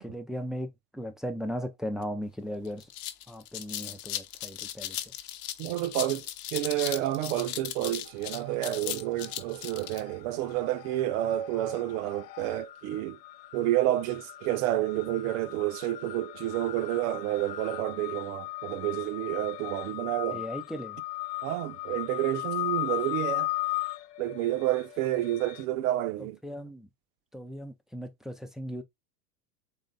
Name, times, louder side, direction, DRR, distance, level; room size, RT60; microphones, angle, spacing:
voice 1, 0.0-2.9 3.3-5.0 20.3-21.0 26.4-26.9 27.3-28.8, equal, ahead, 0.4 m, -37 dB
sound 1, 2.2-2.3 2.6-10.0, left 13 dB, 45° left, 0.8 m, -37 dB
voice 2, 5.6-6.2 6.5-13.2 13.5-20.4 21.4-23.5 24.2-26.4, right 14 dB, 60° right, 0.7 m, -29 dB
sound 2, 8.1-8.7 9.0-25.6, left 18 dB, 80° left, 0.6 m, -37 dB
4.0 x 3.1 x 4.0 m
hypercardioid pair, 100°, 48 cm